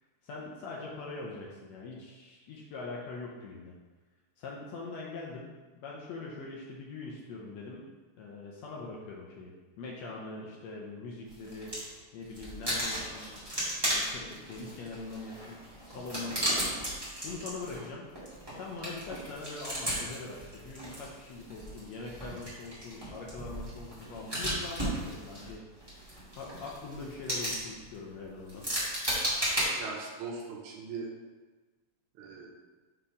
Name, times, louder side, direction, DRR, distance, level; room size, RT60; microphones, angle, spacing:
voice 1, 0.2-3.7 4.4-7.9 8.2-11.8 12.1-16.8 17.2-18.1 18.5-25.6 26.3-28.7, left 3 dB, 70° left, -3 dB, 1.7 m, -42 dB
sound 1, 11.3-11.9 12.3-29.6, equal, 10° right, 1.5 m, -36 dB
voice 2, 29.8-31.1 32.2-32.5, right 4 dB, 75° right, -2 dB, 2.3 m, -40 dB
5.6 x 4.4 x 5.0 m, 1.3 s
omnidirectional pair, 3.6 m